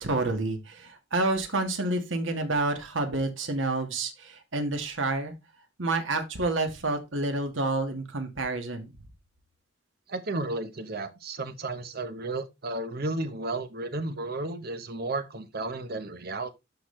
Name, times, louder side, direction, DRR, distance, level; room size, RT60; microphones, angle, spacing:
voice 1, 0.0-5.3 5.8-8.9, right 2 dB, 90° right, 1.6 m, -29 dB
voice 2, 10.1-16.5, right 2 dB, 55° right, 1.0 m, -33 dB
12.0 x 4.1 x 3.2 m
head